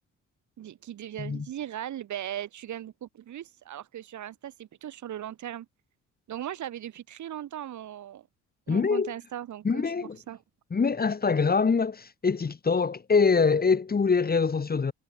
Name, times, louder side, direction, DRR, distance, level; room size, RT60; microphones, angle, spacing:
voice 1, 0.6-5.7 6.3-8.3 8.7-10.4, right 11 dB, 70° right, 6.0 m, -38 dB
voice 2, 8.7-9.1 9.6-10.2 10.7-14.9, left 5 dB, 30° left, 2.3 m, -24 dB
cardioid pair, 90°, 30 cm